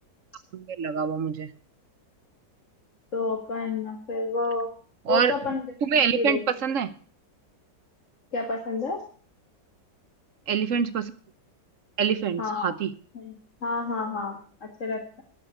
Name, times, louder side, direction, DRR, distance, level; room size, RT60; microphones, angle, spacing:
voice 1, 0.5-1.5 5.1-5.3 5.8-6.9 10.5-11.1 12.0-12.9, right 7 dB, 55° right, 13 dB, 1.0 m, -25 dB
voice 2, 3.1-4.7 5.1-5.7 5.9-6.4 8.3-9.0 12.4-12.7 13.1-15.2, left 3 dB, 45° left, 1 dB, 2.0 m, -30 dB
12.0 x 7.0 x 8.1 m, 0.44 s
omnidirectional pair, 1.9 m